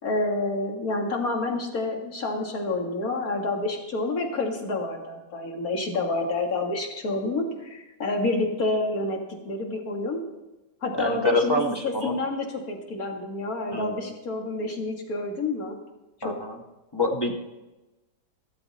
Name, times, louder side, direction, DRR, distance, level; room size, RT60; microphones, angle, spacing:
voice 1, 0.0-10.2 10.8-15.8 16.2-16.3, left 2 dB, 55° left, 2 dB, 2.3 m, -28 dB
voice 2, 10.9-12.2 13.7-14.1 16.2-16.6 16.9-17.3, left 2 dB, 15° left, 1 dB, 1.1 m, -26 dB
14.5 x 12.5 x 4.2 m, 1.0 s
omnidirectional pair, 1.9 m